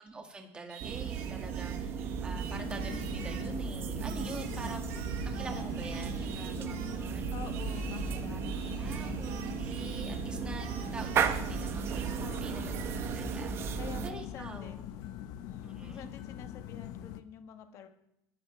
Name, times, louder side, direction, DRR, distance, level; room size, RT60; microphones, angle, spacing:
voice 1, 0.0-7.4 8.3-14.9 15.6-16.1, right 3 dB, 15° right, 3 dB, 1.9 m, -46 dB
Singing, 0.7-3.5 4.1-7.1 7.5-10.2 10.6-13.5, right 9 dB, 80° right, 2.3 m, -49 dB
sound 1, 0.8-14.1, right 7 dB, 35° right, 0.9 m, -35 dB
sound 2, 2.5-17.2, left 10 dB, 60° left, 0.9 m, -43 dB
voice 2, 4.4-5.1 7.3-9.2 12.2-13.0 13.8-14.9 15.4-17.9, left 8 dB, 40° left, 7 dB, 1.5 m, -48 dB
22.5 x 13.0 x 3.3 m, 0.83 s
cardioid pair, 165°, 7 cm